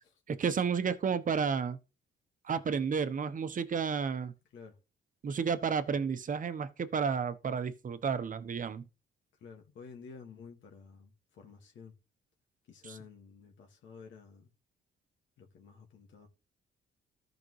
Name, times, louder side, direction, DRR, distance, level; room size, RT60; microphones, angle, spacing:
voice 1, 0.3-1.8 2.4-4.3 5.2-8.8, right 6 dB, 40° right, 1.0 m, -31 dB
voice 2, 9.4-12.0 12.6-14.5 15.4-16.3, left 5 dB, 75° left, 1.9 m, -51 dB
13.5 x 5.1 x 3.2 m
cardioid pair, 90°, 20 cm